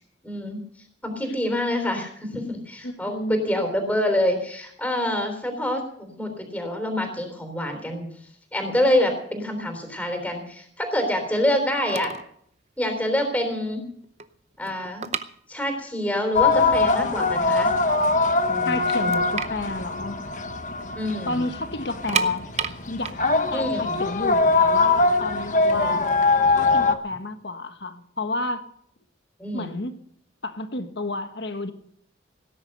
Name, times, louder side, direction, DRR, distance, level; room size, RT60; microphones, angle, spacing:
voice 1, 0.2-0.6 1.0-8.1 8.5-12.1 12.8-13.8 14.6-15.1 15.5-17.7 18.5-19.1 21.0-21.4 23.5-24.0 25.6-26.0 29.4-29.8, left 1 dB, 10° left, 5 dB, 3.5 m, -26 dB
voice 2, 2.8-3.4 18.6-20.2 21.3-22.5 22.9-26.0 26.6-28.6 29.5-29.9 30.4-31.7, left 2 dB, 60° left, 9 dB, 1.4 m, -30 dB
sound 1, 11.6-11.7 11.9-12.3 12.6-12.8 13.4-13.5 13.7-16.0 16.3-16.4 17.0-17.1 17.4-18.2 18.5-18.6 18.9-20.9 21.2-21.3 21.9-24.8 25.5-27.2, right 7 dB, 35° right, 0.7 m, -32 dB
sound 2, 16.3-26.9, left 3 dB, 40° left, 1.1 m, -22 dB
17.5 x 10.0 x 6.6 m, 0.67 s
head